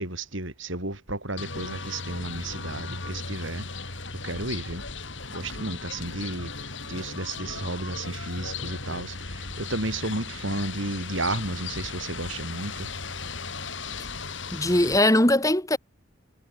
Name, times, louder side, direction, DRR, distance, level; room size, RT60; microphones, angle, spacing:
voice 1, 0.0-3.7 4.2-4.8 5.3-12.9, right 2 dB, 70° right, 6.4 m, -33 dB
sound 1, 1.4-15.0, left 4 dB, 65° left, 6.9 m, -36 dB
voice 2, 14.5-15.8, left 1 dB, 15° left, 2.8 m, -20 dB
head